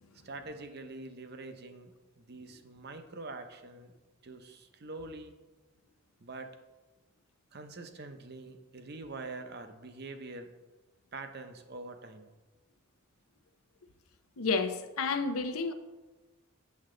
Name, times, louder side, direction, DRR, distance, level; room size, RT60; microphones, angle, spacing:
voice 1, 0.2-3.9 4.2-5.3 6.2-6.5 7.5-10.5 11.1-12.3, right 3 dB, 50° right, 7 dB, 0.7 m, -45 dB
voice 2, 14.4-15.7, left 4 dB, 90° left, 9 dB, 0.7 m, -30 dB
8.5 x 7.1 x 3.8 m, 1.2 s
head